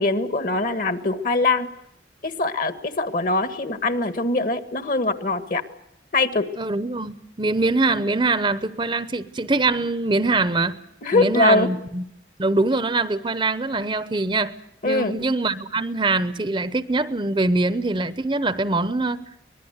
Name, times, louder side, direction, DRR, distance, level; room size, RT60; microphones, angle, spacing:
voice 1, 0.0-1.7 2.2-5.6 6.1-6.5 11.0-11.7 14.8-15.2, left 2 dB, 50° left, 1.6 m, -22 dB
voice 2, 6.6-10.7 11.1-12.0 12.4-14.5 14.8-19.2, right 3 dB, 25° right, 0.8 m, -23 dB
24.5 x 20.5 x 8.1 m
head